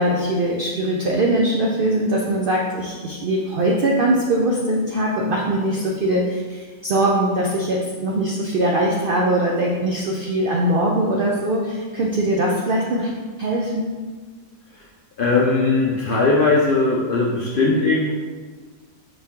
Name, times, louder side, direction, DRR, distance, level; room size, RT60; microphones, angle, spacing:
voice 1, 0.0-13.1 13.4-13.9, right 1 dB, 85° right, -2 dB, 0.4 m, -21 dB
voice 2, 15.2-18.1, left 3 dB, 75° left, -3 dB, 0.5 m, -19 dB
5.1 x 2.8 x 3.5 m, 1.4 s
omnidirectional pair, 1.5 m